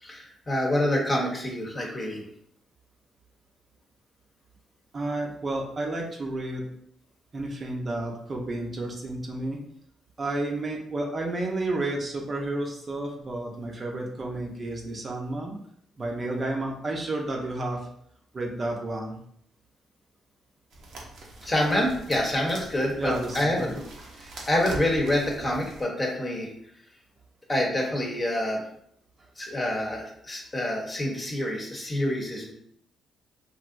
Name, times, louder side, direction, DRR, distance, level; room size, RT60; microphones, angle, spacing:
voice 1, 0.0-2.2 21.4-23.8 24.2-26.5 27.5-28.6 29.4-32.5, left 1 dB, 30° left, -1 dB, 0.9 m, -27 dB
voice 2, 4.9-6.6 7.3-9.6 10.2-15.5 16.0-17.8 18.3-19.2 23.0-23.7, right 2 dB, 40° right, 0 dB, 0.7 m, -31 dB
sound 1, 20.7-25.8, right 2 dB, 70° right, 0.8 m, -42 dB
3.2 x 2.6 x 2.5 m, 0.68 s
supercardioid pair, 70°, 0 cm